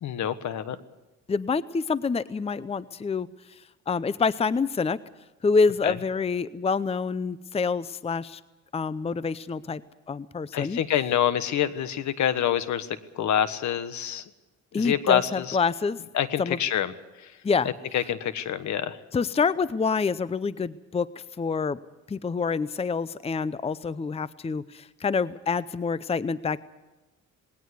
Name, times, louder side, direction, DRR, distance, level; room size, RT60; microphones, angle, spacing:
voice 1, 0.0-0.8 5.8-6.0 10.5-14.3 14.8-15.6 16.1-16.9 17.2-17.3 17.6-19.0, left 9 dB, 70° left, 13 dB, 1.5 m, -26 dB
voice 2, 1.3-3.3 3.9-5.0 5.4-8.4 8.7-9.8 10.1-10.8 14.7-16.0 16.4-16.6 17.4-17.7 19.1-21.1 21.4-21.8 22.1-26.6, left 5 dB, 20° left, 17 dB, 0.6 m, -27 dB
20.0 x 18.0 x 8.3 m, 1.1 s
cardioid pair, 90°, 30 cm